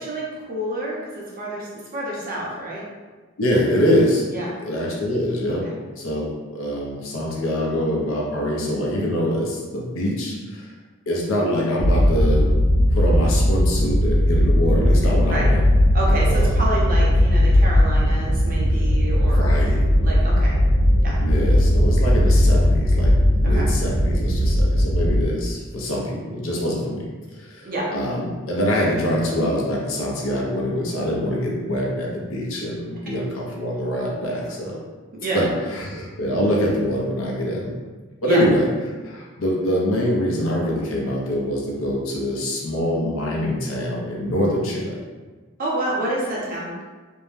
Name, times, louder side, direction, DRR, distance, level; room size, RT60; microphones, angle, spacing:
voice 1, 0.0-2.8 4.3-4.5 15.3-15.5 15.9-19.5 20.0-20.5 21.0-21.1 23.4-23.6 27.6-27.9 35.1-35.5 38.2-38.4 45.6-46.7, right 1 dB, 45° right, -4 dB, 0.7 m, -28 dB
voice 2, 3.4-5.7 6.0-10.7 11.1-12.5 12.9-15.6 16.1-16.6 19.2-19.8 21.2-34.8 35.3-37.7 38.2-38.7 39.0-45.0, equal, 80° left, -2 dB, 0.6 m, -24 dB
sound 1, 11.8-25.2, equal, 75° right, 0.8 m, -18 dB
2.6 x 2.1 x 3.1 m, 1.3 s
head